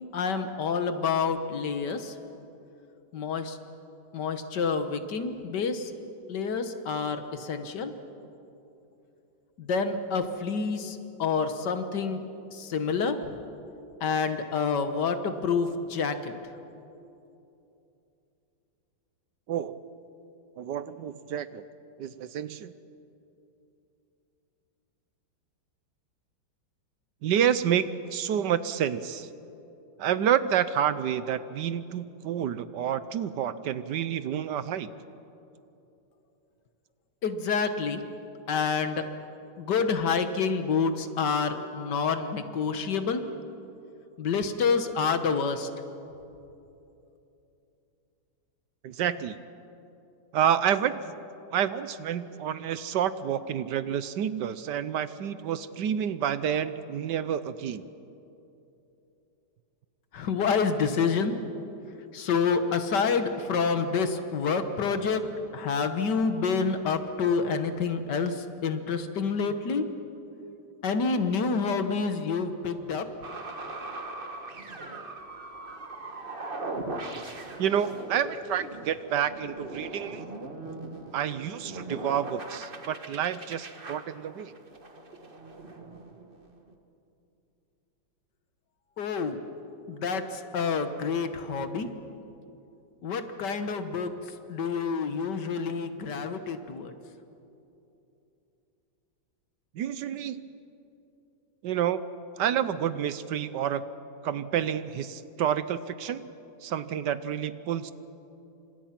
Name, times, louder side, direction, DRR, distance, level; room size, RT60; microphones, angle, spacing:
voice 1, 0.1-2.2 3.1-3.6 4.1-5.9 6.3-7.9 9.6-12.2 12.5-13.2 14.0-16.3 37.2-38.0 38.5-39.0 39.6-43.2 44.2-45.7 60.1-61.4 62.1-65.2 65.5-69.9 70.8-73.1 89.0-89.4 89.9-91.9 93.0-94.1 94.5-96.9, left 5 dB, 65° left, 9 dB, 1.8 m, -28 dB
voice 2, 20.6-21.6 22.0-22.7 27.2-29.3 30.0-34.9 48.8-49.4 50.3-51.1 51.5-57.9 77.6-80.3 81.1-84.5 99.7-100.5 101.6-102.0 102.4-103.8 104.2-106.2 106.6-107.9, right 9 dB, 70° right, 14 dB, 1.3 m, -29 dB
sound 1, 73.2-86.7, right 2 dB, 30° right, 1.5 m, -40 dB
28.5 x 26.0 x 5.9 m, 2.9 s
omnidirectional pair, 2.0 m